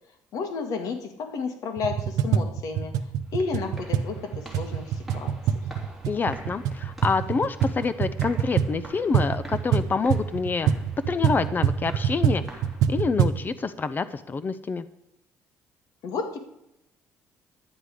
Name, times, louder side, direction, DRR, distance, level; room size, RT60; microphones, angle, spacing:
voice 1, 0.3-2.9 3.3-5.3 16.0-16.4, left 4 dB, 70° left, 5 dB, 2.0 m, -31 dB
sound 1, 1.8-13.4, right 8 dB, 85° right, 0.8 m, -26 dB
sound 2, 3.2-13.2, right 2 dB, ahead, 3.4 m, -46 dB
voice 2, 6.1-10.7 11.1-12.4 12.9-14.9, left 4 dB, 30° left, 14 dB, 0.6 m, -27 dB
11.0 x 9.9 x 5.0 m, 0.83 s
cardioid pair, 110°, 6 cm